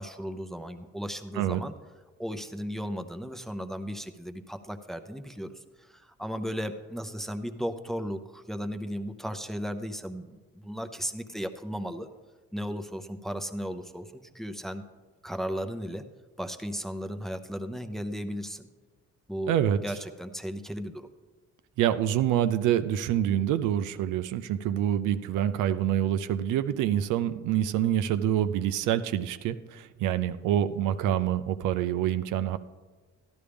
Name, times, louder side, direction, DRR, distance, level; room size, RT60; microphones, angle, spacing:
voice 1, 0.0-1.7 2.2-12.1 12.5-14.8 15.2-16.0 16.4-18.7 19.3-19.6 19.8-21.1, equal, ahead, 6 dB, 0.6 m, -35 dB
voice 2, 19.5-19.8 21.8-32.6, right 11 dB, 90° right, 11 dB, 0.5 m, -26 dB
12.5 x 11.5 x 3.4 m, 1.3 s
cardioid pair, 90°, 30 cm